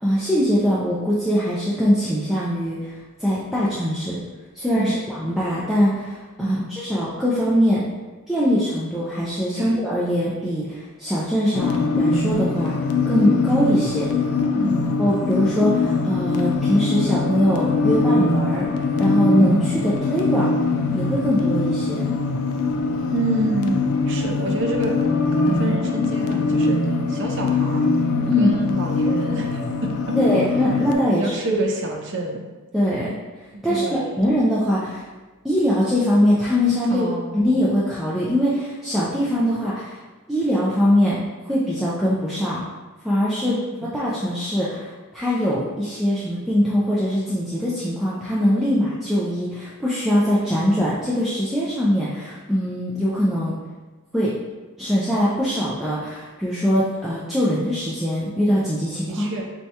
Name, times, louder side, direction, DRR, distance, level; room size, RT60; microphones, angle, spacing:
voice 1, 0.0-2.9 3.2-4.2 4.5-7.8 8.3-12.8 13.1-14.1 15.0-20.5 20.9-22.0 28.3-28.5 30.2-31.6 32.7-33.1 33.6-35.0 35.4-37.1 37.3-40.0 40.3-42.6 43.0-43.6 43.9-53.6 54.1-54.3 54.8-59.3, equal, ahead, -9 dB, 0.3 m, -22 dB
voice 2, 6.4-6.7 9.6-9.7 14.5-14.9 23.1-25.0 25.3-27.8 28.4-30.2 31.1-32.5 33.6-34.2 36.9-37.4 43.5-43.6 43.8-43.9 59.1-59.5, right 2 dB, 55° right, 1 dB, 0.5 m, -28 dB
sound 1, 11.5-30.9, left 3 dB, 80° left, 0.4 m, -22 dB
4.3 x 2.3 x 2.7 m, 1.2 s
head